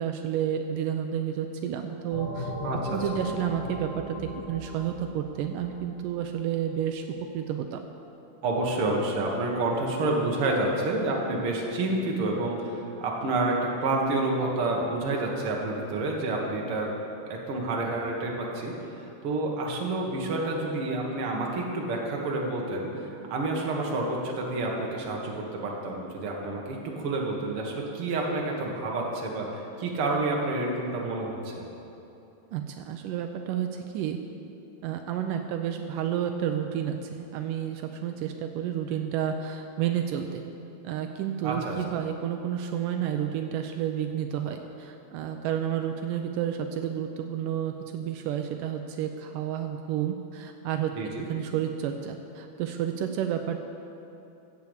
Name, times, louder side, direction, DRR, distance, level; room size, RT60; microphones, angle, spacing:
voice 1, 0.0-2.5 2.9-7.1 7.3-7.8 32.5-34.2 34.8-40.4 40.8-50.9 51.3-53.7, right 9 dB, 90° right, 5 dB, 1.9 m, -30 dB
sound 1, 2.1-6.5, left 1 dB, 20° left, 3.6 m, -37 dB
voice 2, 2.6-3.0 8.4-16.9 17.2-31.6 41.4-41.8 51.0-51.3, right 2 dB, 50° right, -1 dB, 1.9 m, -29 dB
15.5 x 7.0 x 8.0 m, 2.9 s
omnidirectional pair, 4.5 m